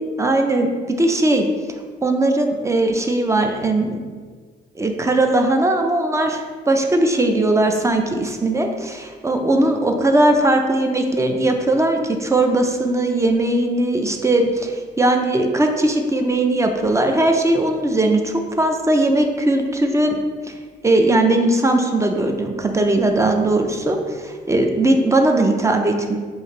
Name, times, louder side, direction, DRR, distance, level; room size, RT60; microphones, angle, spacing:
voice 1, 0.2-1.5 2.0-4.0 4.8-20.2 20.4-20.5 20.8-26.2, right 2 dB, 15° right, 4 dB, 0.4 m, -19 dB
4.6 x 2.6 x 3.0 m, 1.5 s
cardioid pair, 90°, 20 cm